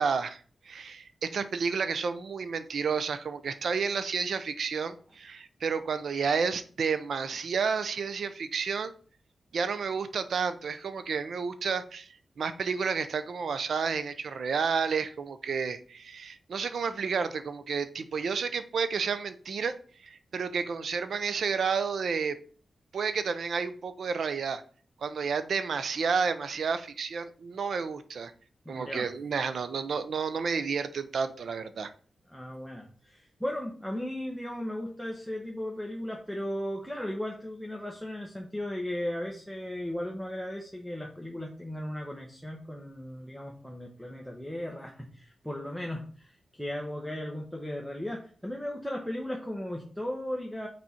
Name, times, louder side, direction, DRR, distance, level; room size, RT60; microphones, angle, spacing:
voice 1, 0.0-8.9 9.5-19.7 20.0-22.4 22.9-24.6 25.0-28.3 28.7-31.9, right 5 dB, 70° right, 11 dB, 0.7 m, -31 dB
voice 2, 28.6-29.1 32.3-50.7, left 1 dB, ahead, 0 dB, 1.1 m, -36 dB
6.2 x 4.3 x 4.3 m, 0.43 s
wide cardioid pair, 95°, 0 cm